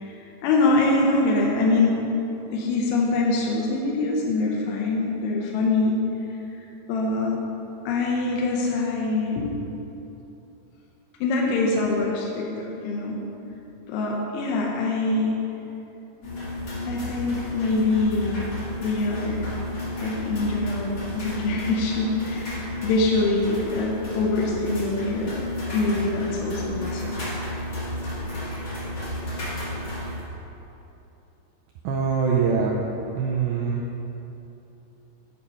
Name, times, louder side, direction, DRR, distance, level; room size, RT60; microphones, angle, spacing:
voice 1, 0.4-2.0 2.5-6.0 6.9-7.4 7.9-9.5 11.2-13.2 13.9-15.3 16.8-18.5 18.8-19.5 20.0-25.4 25.7-27.2, left 3 dB, 80° left, -1 dB, 2.8 m, -24 dB
sound 1, 16.2-30.2, left 1 dB, 60° left, 1.3 m, -32 dB
voice 2, 31.8-33.8, right 5 dB, 80° right, -3 dB, 2.2 m, -24 dB
8.8 x 4.3 x 5.4 m, 3.0 s
omnidirectional pair, 4.9 m